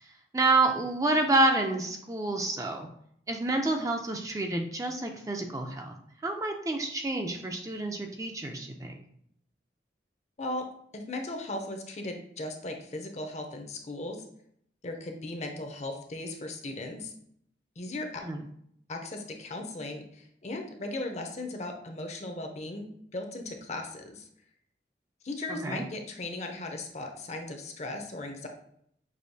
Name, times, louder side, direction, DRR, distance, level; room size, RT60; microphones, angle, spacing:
voice 1, 0.3-2.9 3.3-5.9 6.2-9.0 18.2-18.4 25.6-25.8, right 2 dB, 20° right, 3 dB, 0.4 m, -28 dB
voice 2, 10.9-14.2 14.8-17.1 17.8-18.2 18.9-22.9 23.1-24.3 25.2-28.5, left 2 dB, 40° left, 3 dB, 0.6 m, -37 dB
6.2 x 2.8 x 2.7 m, 0.68 s
head